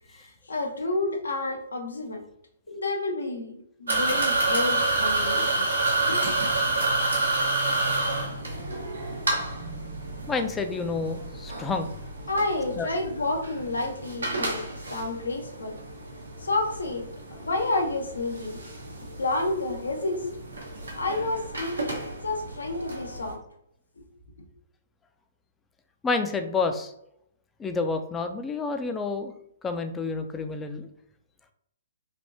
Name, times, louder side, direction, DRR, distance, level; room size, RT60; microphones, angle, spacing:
voice 1, 0.1-2.2 2.7-5.7 6.1-6.6 12.3-15.8 16.4-18.6 19.2-20.3 20.9-23.4 24.0-24.1 24.4-24.5, left 2 dB, 85° left, 3 dB, 0.8 m, -30 dB
sound 1, 3.9-23.3, right 2 dB, 90° right, 0.9 m, -29 dB
voice 2, 10.3-11.9 12.8-12.9 26.0-26.9 27.6-29.3 29.6-30.9, left 4 dB, 15° left, 7 dB, 0.4 m, -29 dB
3.4 x 2.5 x 2.6 m, 0.74 s
hypercardioid pair, 130°, 0 cm